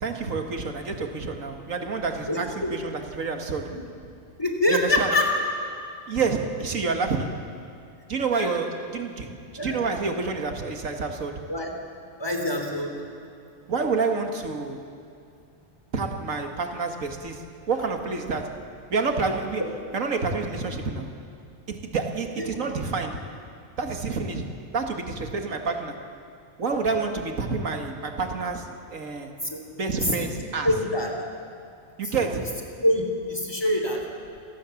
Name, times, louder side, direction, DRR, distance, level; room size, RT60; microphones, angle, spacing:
voice 1, 0.0-3.8 4.7-5.1 6.1-7.4 8.1-11.4 13.7-14.8 15.9-18.6 18.9-19.6 19.9-21.1 21.7-23.2 23.8-26.0 26.6-29.3 29.7-30.7 32.0-32.5, right 4 dB, 85° right, 4 dB, 2.1 m, -28 dB
voice 2, 2.3-2.7 3.7-3.8 4.4-5.3 8.3-8.6 9.6-9.8 11.5-11.7 12.2-12.9 22.4-22.5 29.5-29.6 29.9-30.3 30.6-31.1 32.0-32.2 32.8-34.0, left 1 dB, 20° left, 2 dB, 3.2 m, -25 dB
28.0 x 18.5 x 7.1 m, 2.4 s
omnidirectional pair, 1.3 m